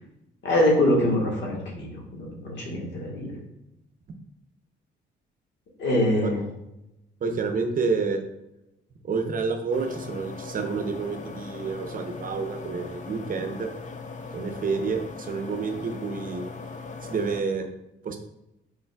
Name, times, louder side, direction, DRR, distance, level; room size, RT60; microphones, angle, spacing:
voice 1, 0.4-3.3 5.8-6.4, left 1 dB, 65° left, -2 dB, 1.4 m, -24 dB
voice 2, 7.2-8.2 9.0-13.7 14.3-16.5 17.1-17.7 18.0-18.2, right 4 dB, 45° right, 5 dB, 0.7 m, -29 dB
sound 1, 9.7-17.4, left 4 dB, 40° left, 0.6 m, -39 dB
5.3 x 3.9 x 2.3 m, 0.87 s
cardioid pair, 90°, 20 cm